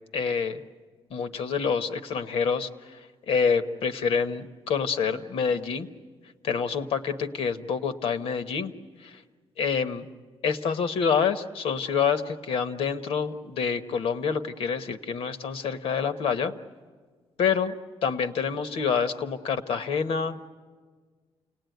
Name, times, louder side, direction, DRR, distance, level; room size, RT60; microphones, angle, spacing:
voice 1, 0.1-0.6 1.1-3.0 3.3-5.9 6.4-8.7 9.0-9.2 9.6-10.1 10.4-16.5 17.4-17.7 18.0-20.5, left 6 dB, 70° left, 9 dB, 1.2 m, -27 dB
29.0 x 19.0 x 9.3 m, 1.5 s
cardioid pair, 165°, 10 cm